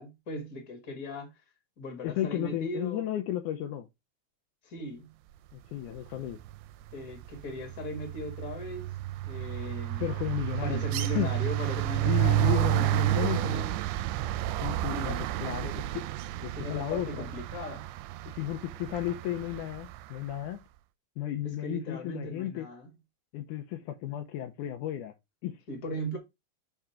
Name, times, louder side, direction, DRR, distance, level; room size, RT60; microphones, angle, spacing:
voice 1, 0.0-1.4 1.8-3.1 4.6-5.2 6.9-8.9 9.2-10.0 10.6-13.8 14.9-15.2 16.5-18.0 21.4-22.9 25.7-26.2, left 1 dB, 40° left, 1.3 m, -38 dB
voice 2, 2.0-3.9 5.5-6.4 10.0-10.9 11.2-11.3 12.1-13.7 14.6-16.0 16.4-17.3 18.3-20.6 21.2-22.7 23.3-25.1 25.4-25.6, left 12 dB, 80° left, 1.9 m, -33 dB
sound 1, 6.3-6.6 6.9-20.0, right 17 dB, 85° right, 2.4 m, -31 dB
5.8 x 3.7 x 5.7 m
omnidirectional pair, 4.4 m